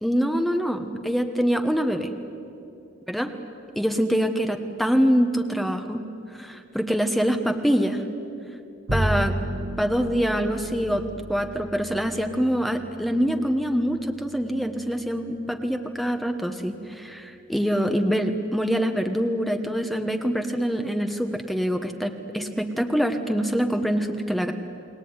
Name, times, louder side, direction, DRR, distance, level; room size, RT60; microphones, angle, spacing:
voice 1, 0.0-2.1 3.1-3.3 3.8-6.0 6.3-8.0 8.9-9.4 9.8-24.5, equal, ahead, 5 dB, 1.2 m, -25 dB
Bowed string instrument, 8.9-15.3, right 1 dB, 70° right, 2.3 m, -33 dB
29.5 x 21.0 x 9.7 m, 2.7 s
head